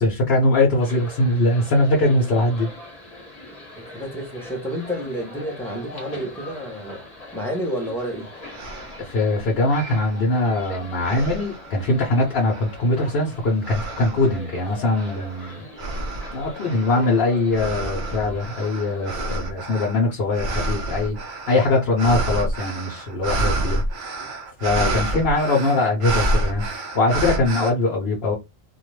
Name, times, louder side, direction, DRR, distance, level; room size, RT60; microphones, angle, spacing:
voice 1, 0.0-2.7 9.0-15.7 16.3-23.8 24.6-28.3, left 2 dB, 75° left, 1.0 m, -21 dB
sound 1, 0.8-19.3, left 2 dB, 40° left, 1.1 m, -41 dB
voice 2, 3.9-7.0 7.3-8.3 20.4-20.6 24.2-24.3 24.8-25.1, equal, 5° left, 0.8 m, -30 dB
sound 2, 8.0-8.1 8.5-9.1 9.7-10.6 11.0-11.9 12.5-13.0 13.6-14.4 14.9-27.7, right 2 dB, 55° right, 0.7 m, -29 dB
2.5 x 2.2 x 3.1 m
omnidirectional pair, 1.0 m